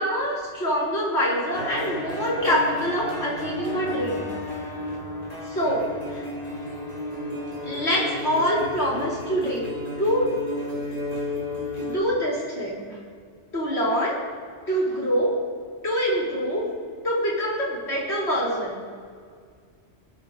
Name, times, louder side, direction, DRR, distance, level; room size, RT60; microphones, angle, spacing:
voice 1, 0.0-4.3 5.4-6.2 7.6-9.7 10.0-10.3 11.8-13.0 13.5-14.2 14.7-15.3 15.8-16.6 17.0-18.8, equal, 55° left, -5 dB, 4.9 m, -25 dB
sound 1, 1.5-12.0, left 2 dB, 30° left, 2.6 m, -33 dB
26.5 x 10.0 x 4.1 m, 2.1 s
omnidirectional pair, 1.3 m